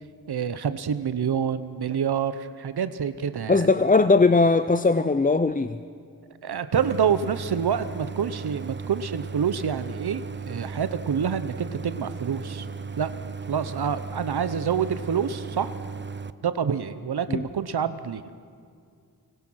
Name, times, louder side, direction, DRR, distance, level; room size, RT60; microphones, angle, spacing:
voice 1, 0.3-3.7 6.4-12.7 13.0-13.1 13.5-15.7 16.4-18.3, right 7 dB, 85° right, 12 dB, 0.8 m, -27 dB
voice 2, 3.5-5.8 17.3-17.4, left 3 dB, 20° left, 11 dB, 0.5 m, -19 dB
Idling, 6.7-16.3, right 5 dB, 30° right, 0.5 m, -36 dB
24.5 x 20.5 x 6.3 m, 2.2 s
wide cardioid pair, 95°, 38 cm